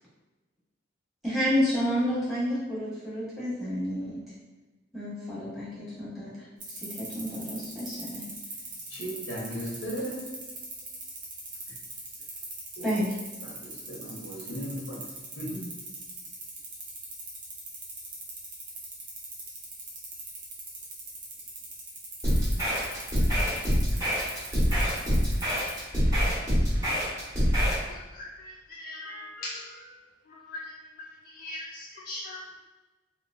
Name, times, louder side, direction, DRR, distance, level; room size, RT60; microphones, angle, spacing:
voice 1, 1.2-4.2 4.9-6.3 6.8-8.2 12.8-13.1, equal, ahead, -10 dB, 1.4 m, -30 dB
sound 1, 6.6-25.8, right 3 dB, 45° right, 0.9 m, -41 dB
voice 2, 8.9-10.2 12.8-12.9 13.4-15.0 15.4-15.7, equal, 85° left, -4 dB, 1.0 m, -36 dB
sound 2, 22.2-27.8, equal, 20° right, 1.4 m, -25 dB
voice 3, 27.9-29.9 30.3-30.7 31.0-32.6, left 1 dB, 55° left, -1 dB, 0.3 m, -41 dB
3.0 x 2.9 x 2.6 m, 1.2 s
head